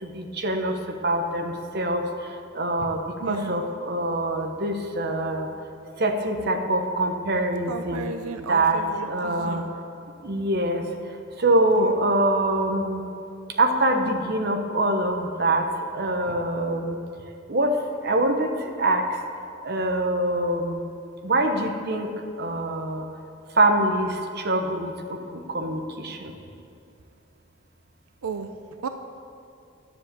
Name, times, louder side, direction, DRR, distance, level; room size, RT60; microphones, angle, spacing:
voice 1, 0.0-0.7 1.0-5.5 6.0-8.0 8.5-9.6 10.2-10.8 11.4-13.0 13.6-15.7 15.9-17.0 17.5-19.0 19.6-20.8 21.2-22.1 22.4-23.1 23.6-26.3, right 1 dB, 50° right, 4 dB, 1.0 m, -24 dB
voice 2, 3.2-3.6 7.7-9.7 11.7-11.9 28.2-28.5 28.8-28.9, right 5 dB, 90° right, 8 dB, 0.5 m, -34 dB
10.5 x 7.4 x 7.5 m, 2.6 s
head